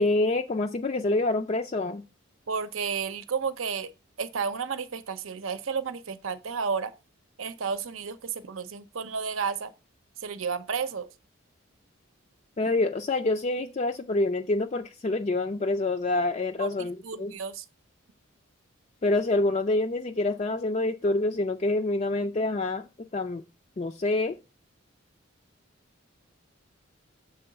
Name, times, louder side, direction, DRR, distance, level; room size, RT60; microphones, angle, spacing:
voice 1, 0.0-2.0 12.6-17.3 19.0-22.8 23.1-23.4 23.8-24.4, left 2 dB, 30° left, 0.4 m, -26 dB
voice 2, 2.5-3.9 4.2-6.9 7.4-9.7 10.2-11.1 16.6-17.6, right 5 dB, 75° right, 0.7 m, -32 dB
6.9 x 3.9 x 6.5 m
head